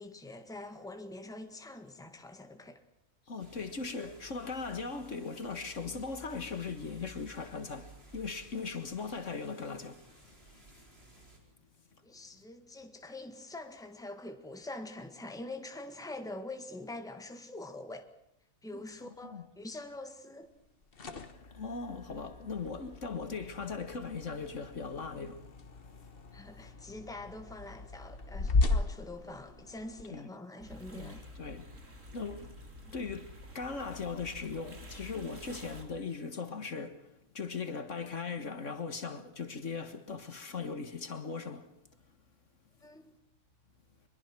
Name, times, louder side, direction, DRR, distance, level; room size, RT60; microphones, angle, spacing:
voice 1, 0.0-2.8 12.0-18.1 18.6-20.5 26.3-31.3 32.8-33.0 42.8-43.2, left 2 dB, ahead, 1.7 m, -45 dB
voice 2, 3.3-10.0 18.7-19.4 21.5-25.4 30.1-30.3 30.9-31.7 32.1-32.6 32.9-41.7, left 4 dB, 55° left, 2.0 m, -39 dB
sound 1, 3.4-11.4, right 1 dB, 45° right, 5.1 m, -56 dB
sound 2, 20.7-30.0, left 3 dB, 40° left, 1.5 m, -36 dB
sound 3, 30.6-35.8, left 1 dB, 60° right, 4.0 m, -49 dB
24.5 x 22.5 x 6.1 m
omnidirectional pair, 1.5 m